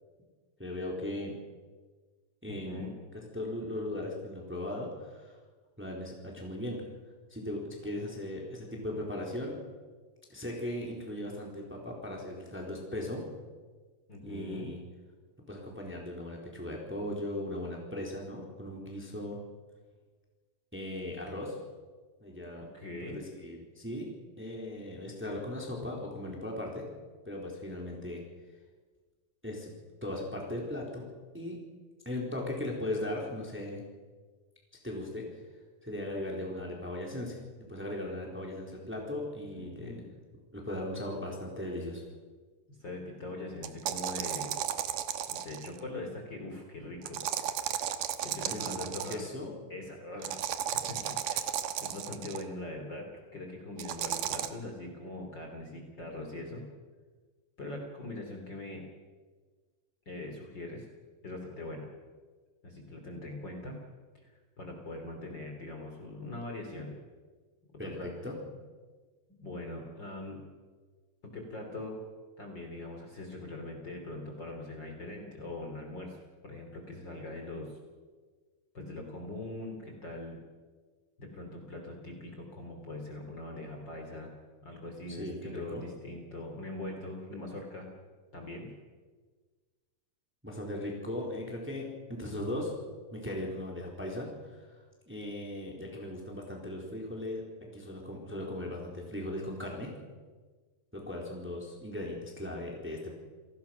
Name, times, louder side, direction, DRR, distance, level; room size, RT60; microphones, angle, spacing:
voice 1, 0.6-1.4 2.4-2.9 3.3-5.4 5.8-6.8 7.3-9.6 10.3-13.2 14.2-14.8 15.5-19.4 20.7-21.6 22.2-22.7 23.0-26.8 27.2-28.2 29.4-29.7 30.0-31.1 31.3-31.6 32.0-33.8 34.8-35.3 35.8-37.4 37.7-40.0 40.5-42.0 48.4-49.5 67.8-68.3 85.1-85.8 90.4-92.7 93.1-94.3 95.1-97.4 97.7-99.9 100.9-103.2, left 1 dB, 5° right, -1 dB, 3.7 m, -38 dB
voice 2, 2.5-2.9 14.1-14.7 22.7-23.2 39.5-40.1 42.8-44.7 45.3-47.9 48.2-49.2 49.7-50.4 50.9-51.5 51.8-56.6 57.6-58.8 60.1-60.9 61.2-61.9 62.6-63.8 64.2-64.3 64.6-66.9 67.8-68.1 69.4-70.4 71.2-72.0 72.4-76.2 76.4-77.7 78.7-80.4 81.2-84.3 84.6-87.9 88.3-88.7, left 2 dB, 30° left, 2 dB, 3.7 m, -42 dB
sound 1, 43.6-45.8 47.1-49.3 50.2-52.4 53.8-54.5, right 10 dB, 75° right, 2.6 m, -34 dB
29.0 x 19.0 x 5.9 m, 1.4 s
omnidirectional pair, 4.0 m